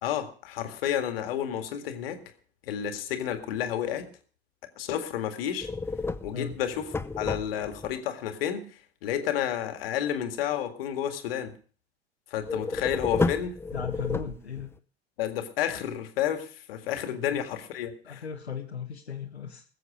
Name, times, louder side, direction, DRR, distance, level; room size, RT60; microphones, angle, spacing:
voice 1, 0.0-2.2 2.6-4.1 4.8-5.7 6.2-6.8 7.2-8.7 9.0-11.5 12.3-13.6 15.2-18.2, left 10 dB, 65° left, 7 dB, 2.0 m, -31 dB
sound 1, 5.6-7.9 12.4-14.7, left 3 dB, 10° left, 0.6 m, -31 dB
voice 2, 13.7-14.7 17.1-17.4 18.0-19.6, left 7 dB, 85° left, 1 dB, 1.3 m, -36 dB
20.5 x 7.7 x 5.0 m, 0.41 s
figure-of-eight pair, 80°, 32 cm